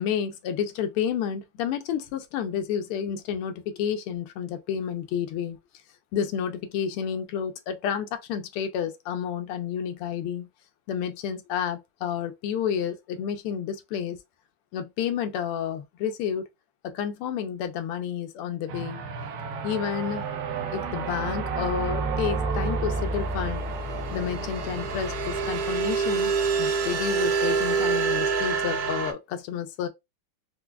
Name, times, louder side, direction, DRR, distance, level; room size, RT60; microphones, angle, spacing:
voice 1, 0.0-5.6 6.1-10.5 10.9-14.2 14.7-16.5 16.8-19.0 19.6-20.3 20.7-23.6 24.1-26.3 26.6-29.9, left 8 dB, 85° left, 1.5 m, -30 dB
sound 1, 18.7-29.1, right 5 dB, 80° right, 0.8 m, -28 dB
4.6 x 2.2 x 2.2 m
omnidirectional pair, 2.4 m